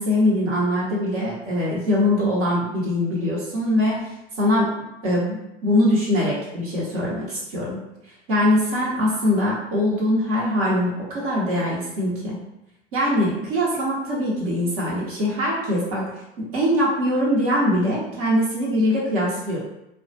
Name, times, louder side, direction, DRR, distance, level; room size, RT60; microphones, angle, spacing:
voice 1, 0.0-4.0 4.4-4.7 5.0-7.8 8.3-12.4 12.9-16.0 16.4-19.6, left 1 dB, 60° right, -5 dB, 0.8 m, -22 dB
2.2 x 2.1 x 2.6 m, 0.89 s
figure-of-eight pair, 70°, 31 cm